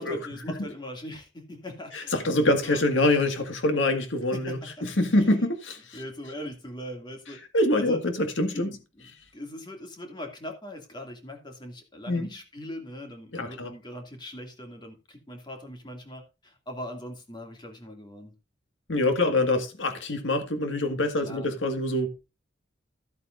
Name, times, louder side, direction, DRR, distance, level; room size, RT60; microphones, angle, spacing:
voice 1, 0.0-2.9 4.3-5.3 5.9-7.4 7.7-8.0 8.5-18.3 21.2-21.6, left 1 dB, 25° left, 2.4 m, -41 dB
voice 2, 1.9-6.0 7.5-8.7 12.1-12.3 13.3-13.7 18.9-22.2, left 1 dB, 85° left, 1.8 m, -25 dB
14.0 x 8.5 x 2.6 m
head